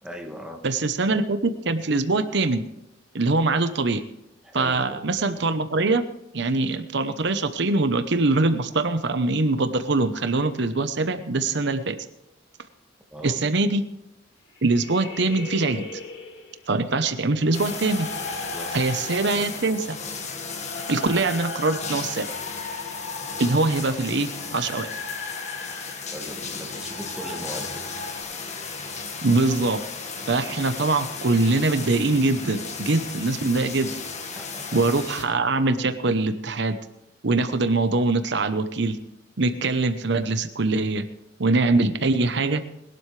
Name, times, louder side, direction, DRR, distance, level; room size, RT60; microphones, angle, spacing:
voice 1, 0.0-0.6 4.4-5.2 13.1-13.4 18.5-18.7 23.9-24.0 26.1-27.9 30.2-30.3 34.3-34.9, equal, 5° right, 2 dB, 1.9 m, -39 dB
voice 2, 0.6-2.6 3.1-4.0 4.5-6.0 6.3-12.0 13.2-13.8 14.6-15.8 16.7-18.1 18.7-20.0 20.9-22.3 23.4-25.0 29.2-29.8 30.3-34.0 34.7-36.8 37.2-39.0 39.4-41.0 41.4-42.6, right 3 dB, 65° right, 10 dB, 0.9 m, -23 dB
sound 1, 14.6-16.7 17.3-28.2, left 3 dB, 65° left, 2.3 m, -38 dB
sound 2, 17.5-35.2, left 4 dB, 40° left, 1.7 m, -35 dB
21.0 x 12.0 x 3.3 m, 0.88 s
head